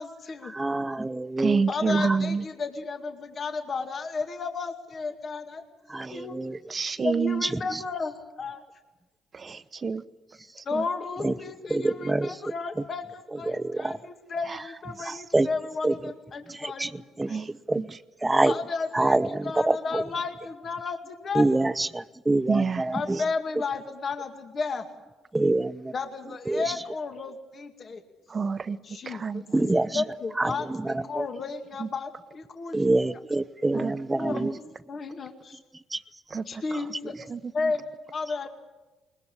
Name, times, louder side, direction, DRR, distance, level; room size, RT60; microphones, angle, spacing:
voice 1, 0.0-0.5 1.7-5.6 6.1-6.4 7.0-8.6 10.7-17.4 18.4-21.7 22.9-24.8 25.9-28.0 28.8-29.5 29.9-32.8 33.8-34.6 34.9-35.6 36.5-37.2 37.5-38.5, left 4 dB, 50° left, 2.2 m, -33 dB
voice 2, 0.5-1.7 2.0-2.2 5.9-6.6 7.4-7.6 11.2-11.3 11.7-12.3 13.5-14.0 15.3-15.5 15.8-15.9 16.5-16.9 17.2-17.3 17.7-17.9 18.2-18.5 18.9-20.0 21.3-23.2 25.3-25.9 26.5-26.6 29.5-30.0 30.4-31.3 32.7-34.5 35.9-36.0, right 2 dB, 15° right, 0.9 m, -26 dB
voice 3, 1.4-2.4 6.0-6.2 6.7-7.4 9.3-10.0 10.6-10.8 14.5-14.6 15.0-15.2 17.3-17.5 17.9-18.0 22.5-22.9 28.3-28.8 29.1-29.4 29.9-30.0 31.8-31.9 33.7-33.9 34.4-34.5 36.3-36.8 37.3-37.7, right 5 dB, 40° right, 1.0 m, -28 dB
21.0 x 20.0 x 9.9 m
supercardioid pair, 65°, 0 cm